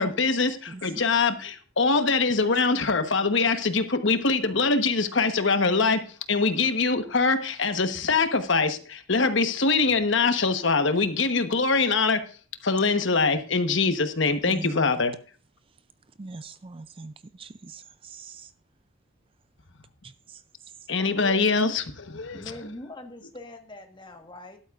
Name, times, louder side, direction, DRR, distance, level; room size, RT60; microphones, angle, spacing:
voice 1, 0.0-6.0 6.3-12.2 12.6-15.1 20.9-22.5, left 4 dB, 60° left, 1.2 m, -23 dB
voice 2, 14.5-14.9 16.2-18.5 20.0-20.4, right 3 dB, 25° right, 0.4 m, -42 dB
voice 3, 21.0-21.8 22.3-24.6, left 1 dB, 20° left, 1.4 m, -42 dB
13.0 x 12.0 x 2.5 m
head